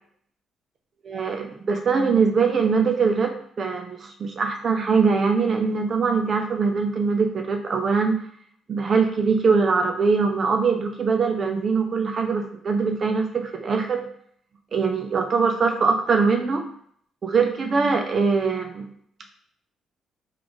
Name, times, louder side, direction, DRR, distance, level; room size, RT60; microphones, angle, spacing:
voice 1, 1.1-8.3 8.7-14.1 14.7-16.6 17.2-18.9, right 5 dB, 45° right, 4 dB, 0.4 m, -22 dB
3.3 x 2.4 x 3.7 m, 0.63 s
cardioid pair, 90°, 0 cm